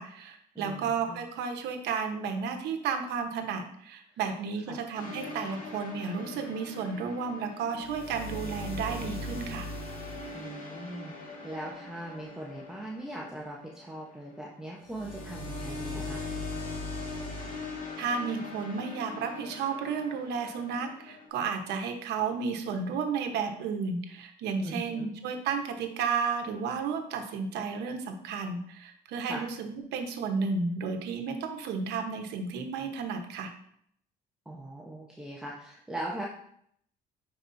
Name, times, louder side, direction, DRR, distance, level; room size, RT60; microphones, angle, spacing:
voice 1, 0.0-9.7 18.0-33.5, right 5 dB, 80° right, 5 dB, 1.0 m, -32 dB
voice 2, 0.5-1.2 4.7-4.8 10.3-16.2 24.6-25.1 29.2-29.4 34.5-36.3, right 1 dB, 5° right, -3 dB, 0.8 m, -40 dB
sound 1, 4.9-14.4 14.8-21.3, left 2 dB, 55° left, 1.9 m, -40 dB
9.6 x 4.6 x 2.6 m, 0.68 s
cardioid pair, 110°, 17 cm